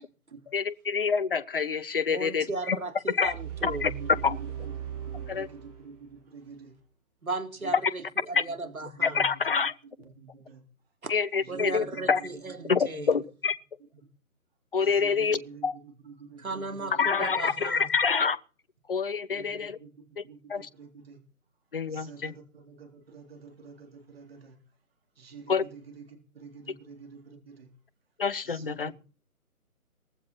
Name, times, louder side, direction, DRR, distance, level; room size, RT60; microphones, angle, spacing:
voice 1, 0.5-2.8 3.2-3.3 3.6-3.9 4.2-4.4 5.3-5.5 9.0-9.7 11.1-12.2 12.7-13.5 14.7-15.7 17.0-18.4 18.9-19.7 20.5-20.6 21.7-22.3 25.5-25.6 28.2-28.9, left 5 dB, 40° left, 0.6 m, -27 dB
voice 2, 2.1-4.0 7.2-9.4 11.0-11.1 11.5-13.1 16.4-17.9, right 3 dB, 70° right, 3.7 m, -36 dB
sound 1, 3.2-6.3, right 10 dB, 25° right, 5.7 m, -38 dB
voice 3, 3.7-4.8 5.1-6.8 7.5-7.7 8.3-11.0 11.4-12.8 13.8-14.1 14.8-17.4 19.3-21.2 21.9-24.9 25.1-27.7 28.4-29.0, right 5 dB, 40° right, 3.9 m, -48 dB
18.0 x 15.5 x 4.4 m
figure-of-eight pair, 150°, 44 cm